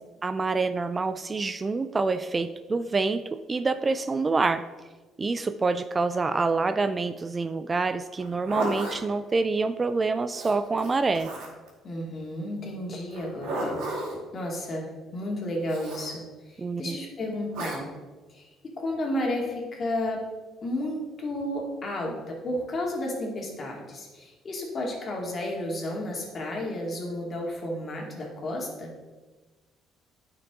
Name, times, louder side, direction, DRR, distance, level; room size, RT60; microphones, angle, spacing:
voice 1, 0.2-4.6 5.2-11.3 16.6-17.0, right 3 dB, 30° right, 11 dB, 0.4 m, -26 dB
Zipper (clothing), 8.2-9.0 10.3-11.7 13.1-14.2 15.7-16.1 17.5-17.8, right 1 dB, 85° right, 2.7 m, -33 dB
voice 2, 11.8-13.8 14.3-17.9 18.3-20.2 20.6-28.9, left 1 dB, 45° left, -1 dB, 2.3 m, -32 dB
9.4 x 5.9 x 3.7 m, 1.3 s
supercardioid pair, 85°, 0 cm